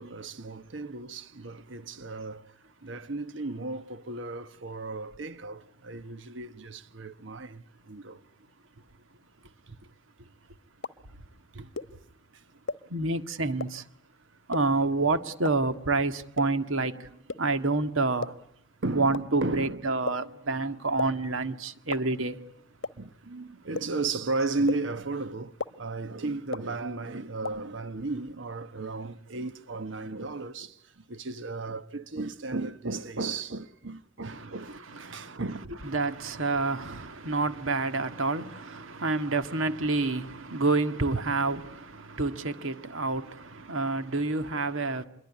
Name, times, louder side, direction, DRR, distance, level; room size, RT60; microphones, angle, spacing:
voice 1, 0.0-2.5 2.8-8.2 9.7-9.9 11.5-11.7 18.8-19.8 20.2-20.5 23.0-35.9, right 3 dB, 70° right, 1.2 m, -35 dB
sound 1, 10.8-10.9 11.8-11.9 12.7-12.8 13.6-13.7 14.5-14.6 15.4-15.5 16.4-16.5 17.3-17.4 18.2-18.3 19.1-19.2 20.1-20.2 21.0-21.1 21.9-22.0 22.8-22.9 23.8-23.9 24.7-24.8 25.6-25.7 26.5-26.6 27.4-27.5, left 4 dB, 75° left, 1.0 m, -31 dB
voice 2, 12.9-13.8 14.5-17.1 17.4-18.3 18.9-22.4 34.3-34.5 34.9-35.4 35.8-45.1, right 3 dB, 85° right, 1.8 m, -28 dB
26.5 x 22.5 x 9.6 m
head